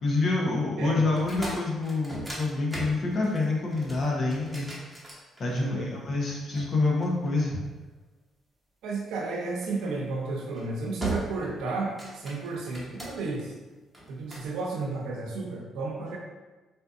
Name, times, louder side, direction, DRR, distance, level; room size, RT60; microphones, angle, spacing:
voice 1, 0.0-4.7 5.4-7.6, left 3 dB, 55° left, -2 dB, 0.9 m, -27 dB
sound 1, 1.1-5.8 6.5-7.9 9.6-9.9 10.4-10.7 11.0-11.6 11.8-13.4 13.9-14.5, right 1 dB, ahead, 1.0 m, -38 dB
voice 2, 5.5-5.9 8.8-13.5 14.1-16.2, right 3 dB, 90° right, -1 dB, 0.7 m, -32 dB
4.1 x 2.5 x 2.5 m, 1.2 s
cardioid pair, 90°, 0 cm